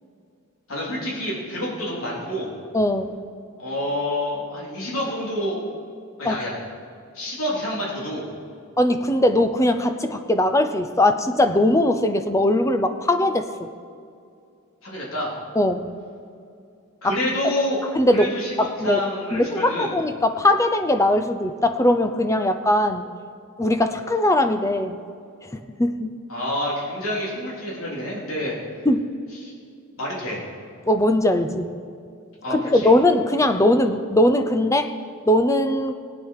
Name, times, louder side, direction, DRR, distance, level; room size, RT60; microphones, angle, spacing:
voice 1, 0.7-2.5 3.6-5.6 6.2-6.6 7.1-8.2 14.8-15.3 17.0-17.8 18.1-19.9 26.3-28.6 29.4-29.5 30.0-30.4 32.4-32.9, left 1 dB, 70° left, -5 dB, 3.8 m, -28 dB
voice 2, 2.7-3.2 6.2-6.4 8.8-13.7 15.6-15.9 17.0-17.2 18.0-18.3 18.6-19.0 19.3-23.0 23.6-25.0 25.5-26.1 28.8-29.1 30.9-31.7 32.5-34.9 35.3-35.9, left 1 dB, 15° left, 8 dB, 0.6 m, -20 dB
17.5 x 9.2 x 4.9 m, 2.4 s
head